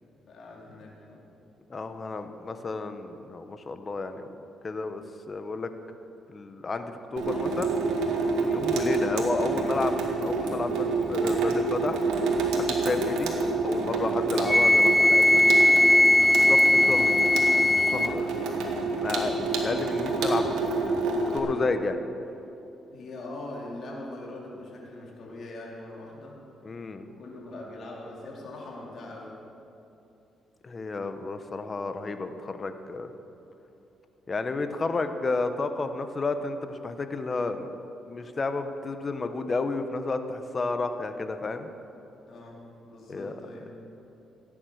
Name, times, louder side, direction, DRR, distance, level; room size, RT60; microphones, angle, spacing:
voice 1, 0.3-1.2 8.3-8.6 13.1-13.2 16.1-16.5 18.3-18.7 22.9-26.4 27.1-29.4 42.3-43.7, left 2 dB, 55° left, -3 dB, 3.6 m, -42 dB
voice 2, 1.7-4.3 4.6-5.7 6.3-7.7 8.5-9.9 10.2-12.0 12.6-13.3 13.6-15.4 16.5-17.2 17.7-18.3 19.0-20.8 21.3-22.0 26.6-27.1 30.6-33.1 34.3-37.7 38.1-41.7 43.1-43.3, left 3 dB, 35° left, 8 dB, 1.1 m, -31 dB
Water tap faucet / Sink (filling or washing), 7.2-21.4, right 3 dB, 85° right, 1.9 m, -28 dB
Wind instrument woodwind instrument, 14.5-18.1, left 1 dB, 10° left, 0.5 m, -19 dB
16.0 x 10.0 x 6.4 m, 2.8 s
cardioid pair, 90°, 0 cm